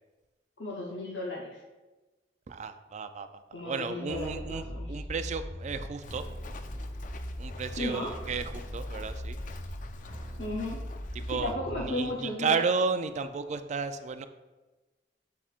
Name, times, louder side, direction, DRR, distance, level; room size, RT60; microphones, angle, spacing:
voice 1, 0.6-1.6 3.5-4.9 7.8-8.1 10.4-10.8 11.3-12.6, left 1 dB, 75° left, -1 dB, 0.8 m, -34 dB
voice 2, 2.5-6.2 7.4-9.4 11.3-14.3, right 5 dB, 40° right, 10 dB, 0.4 m, -33 dB
sound 1, 4.1-12.1, equal, 30° left, 1.8 m, -40 dB
Walk footsteps, 6.0-11.5, left 2 dB, 45° left, 0.4 m, -47 dB
7.3 x 7.0 x 2.5 m, 1.2 s
head